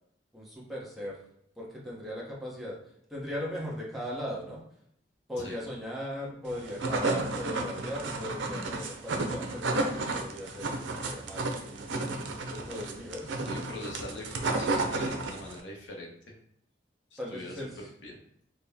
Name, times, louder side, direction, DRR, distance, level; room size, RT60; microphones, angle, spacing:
voice 1, 0.3-1.2 1.6-2.8 3.1-4.6 5.3-12.2 12.5-13.9 17.2-17.9, left 1 dB, ahead, -6 dB, 0.9 m, -39 dB
sound 1, 6.5-15.6, right 2 dB, 85° right, 0.6 m, -32 dB
voice 2, 13.3-16.2 17.1-17.7 18.0-18.2, left 1 dB, 80° left, -1 dB, 0.9 m, -42 dB
4.1 x 2.2 x 3.4 m, 0.71 s
head